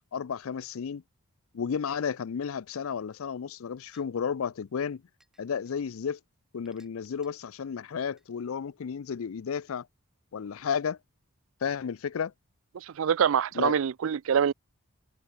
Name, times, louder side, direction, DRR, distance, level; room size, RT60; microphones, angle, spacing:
voice 1, 0.1-1.0 1.5-5.0 5.4-6.2 6.5-9.9 10.3-11.0 11.6-12.3 13.5-13.8, left 6 dB, 70° left, 0.4 m, -32 dB
sound 1, 3.0-3.1 3.9-4.1 5.2-5.8 6.7-7.3 8.2-8.3, right 1 dB, ahead, 4.1 m, -64 dB
voice 2, 12.8-14.5, right 7 dB, 65° right, 0.4 m, -25 dB
open air
head